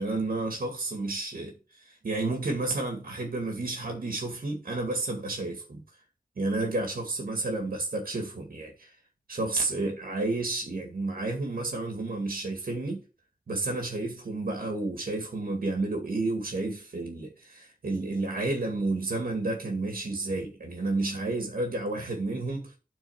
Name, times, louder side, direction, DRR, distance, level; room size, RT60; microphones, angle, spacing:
voice 1, 0.0-1.5 1.8-5.8 6.4-8.9 9.3-13.0 13.5-22.7, right 2 dB, 80° right, 2.1 m, -31 dB
7.5 x 4.5 x 5.8 m
wide cardioid pair, 80°, 15 cm